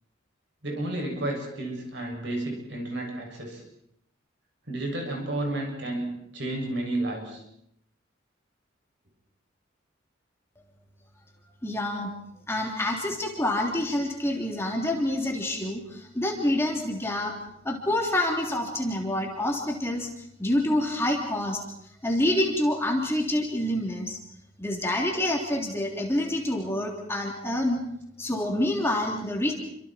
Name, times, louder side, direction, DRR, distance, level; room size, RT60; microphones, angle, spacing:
voice 1, 0.6-3.6 4.7-7.4, right 1 dB, 60° right, 1 dB, 7.1 m, -31 dB
voice 2, 11.6-12.1 12.5-17.4 17.6-20.1 20.4-21.6 22.0-24.2 24.6-27.8 28.2-29.6, left 1 dB, 15° left, 0 dB, 3.3 m, -27 dB
28.5 x 25.0 x 4.5 m, 0.74 s
head